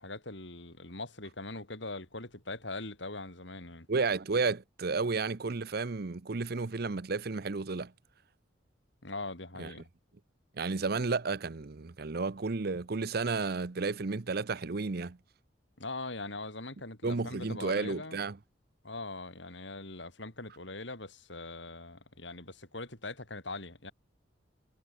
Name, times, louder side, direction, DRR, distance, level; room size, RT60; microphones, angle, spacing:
voice 1, 0.0-3.9 9.0-9.9 15.8-18.2 18.8-23.9, left 2 dB, 75° left, 5.9 m, -41 dB
voice 2, 3.9-7.9 9.6-9.7 10.6-15.2 17.0-18.4, right 4 dB, 55° right, 0.7 m, -32 dB
head